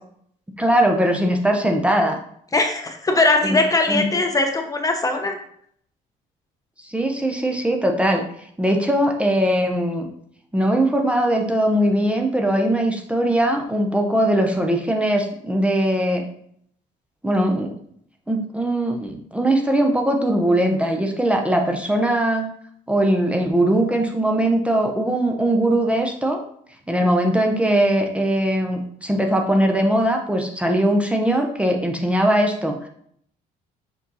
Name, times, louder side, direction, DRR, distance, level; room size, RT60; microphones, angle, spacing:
voice 1, 0.6-2.2 3.4-3.6 3.9-4.1 6.8-8.2 8.6-10.1 10.5-16.2 17.2-17.7 18.3-22.5 22.9-26.4 26.9-32.9, right 1 dB, 5° right, 2 dB, 0.8 m, -20 dB
voice 2, 2.5-5.4, left 2 dB, 20° left, 5 dB, 0.9 m, -20 dB
5.5 x 5.0 x 4.1 m, 0.66 s
cardioid pair, 110°, 17 cm